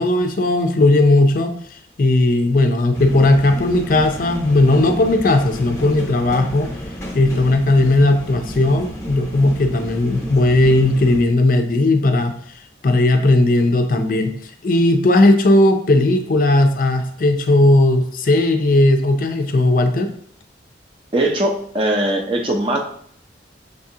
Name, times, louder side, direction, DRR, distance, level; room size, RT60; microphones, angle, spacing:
voice 1, 0.0-1.5 2.0-6.7 7.1-12.4 12.8-14.3 14.6-20.1, left 2 dB, 45° left, 6 dB, 0.4 m, -16 dB
sound 1, 2.9-11.2, left 1 dB, 15° left, 0.8 m, -32 dB
voice 2, 21.1-22.8, right 1 dB, 30° right, 2 dB, 0.5 m, -20 dB
6.5 x 2.4 x 2.7 m, 0.64 s
head